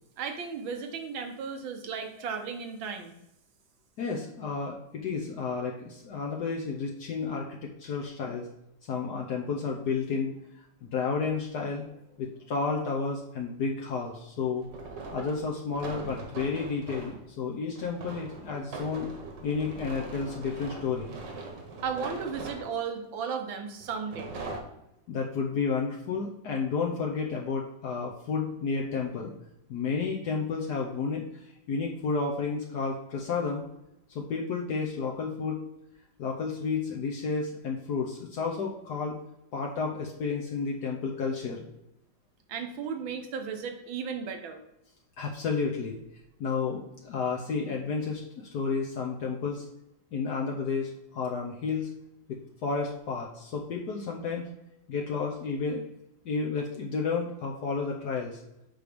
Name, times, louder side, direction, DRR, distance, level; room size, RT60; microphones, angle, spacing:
voice 1, 0.2-3.1 21.8-24.3 42.5-44.6, right 6 dB, 85° right, 5 dB, 1.7 m, -35 dB
voice 2, 4.0-8.5 8.9-10.3 10.8-11.8 12.2-14.7 15.1-19.1 19.4-21.2 25.1-29.3 29.7-33.7 34.1-35.6 36.2-39.2 39.5-41.7 45.2-46.0 46.4-49.6 50.1-51.9 52.3-54.5 54.9-55.8 56.2-58.4, left 5 dB, 65° left, -1 dB, 1.3 m, -31 dB
sound 1, 14.6-17.2 17.8-23.0 23.8-24.6, right 3 dB, 65° right, 1.8 m, -41 dB
8.0 x 3.2 x 5.1 m, 0.85 s
omnidirectional pair, 2.1 m